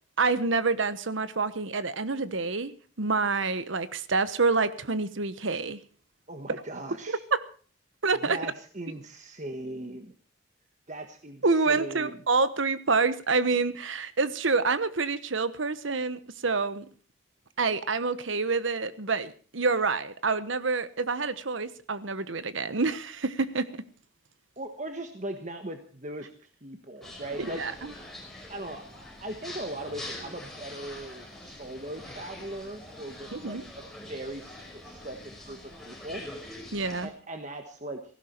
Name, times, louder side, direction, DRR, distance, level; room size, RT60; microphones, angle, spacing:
voice 1, 0.2-5.8 6.5-6.6 7.3-7.4 8.0-8.4 11.4-16.9 17.6-23.7 27.4-27.9 33.3-33.6 36.7-37.1, right 4 dB, 75° right, 14 dB, 1.1 m, -27 dB
voice 2, 6.3-7.2 8.2-10.1 10.9-12.2 24.6-26.3 26.6-27.6 28.5-28.8 29.2-35.2 35.4-36.2 37.0-38.0, right 1 dB, 35° right, 6 dB, 1.4 m, -39 dB
sound 1, 27.0-37.1, left 1 dB, ahead, 5.2 m, -44 dB
17.5 x 15.5 x 4.5 m, 0.41 s
head